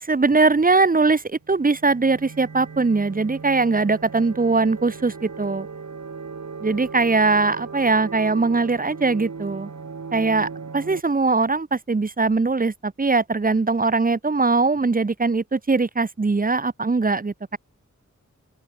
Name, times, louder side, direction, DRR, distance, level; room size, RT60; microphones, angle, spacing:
voice 1, 0.0-5.7 6.6-9.7 10.1-17.6, right 3 dB, 30° right, 0.9 m, -21 dB
sound 1, 1.4-11.0, right 5 dB, 70° right, 4.5 m, -37 dB
open air
wide cardioid pair, 95°, 29 cm